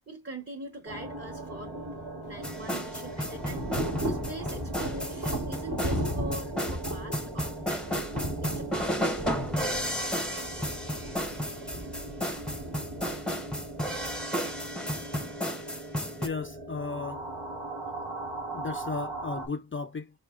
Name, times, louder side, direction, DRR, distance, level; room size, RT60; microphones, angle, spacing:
voice 1, 0.1-1.9 2.2-3.7 4.0-8.0 8.4-10.1, right 2 dB, 30° right, 1.0 m, -43 dB
sound 1, 0.9-19.5, right 2 dB, 85° right, 1.4 m, -40 dB
Thunder / Rain, 2.3-14.2, right 1 dB, 45° right, 1.3 m, -36 dB
sound 2, 2.4-16.3, equal, ahead, 0.7 m, -33 dB
voice 2, 16.2-17.2 18.5-20.1, left 4 dB, 30° left, 0.4 m, -35 dB
4.8 x 2.7 x 2.4 m
cardioid pair, 65°, 42 cm